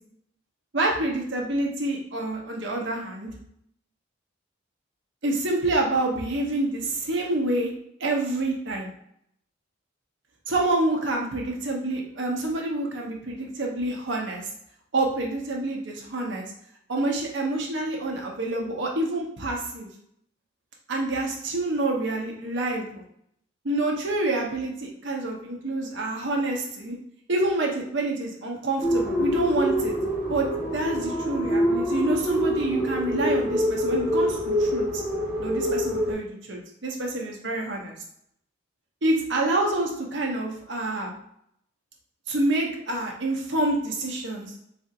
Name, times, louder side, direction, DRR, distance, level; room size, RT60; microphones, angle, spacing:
voice 1, 0.7-3.3 5.2-7.7 8.0-8.9 10.5-14.4 14.9-16.4 16.9-19.9 20.9-23.0 23.6-26.9 27.3-30.0 30.3-30.5 30.7-34.9 35.4-37.9 39.0-41.1 42.3-44.5, right 2 dB, 60° right, 0 dB, 0.8 m, -27 dB
sound 1, 28.8-36.1, equal, 10° right, 0.7 m, -25 dB
4.2 x 2.8 x 2.4 m, 0.71 s
head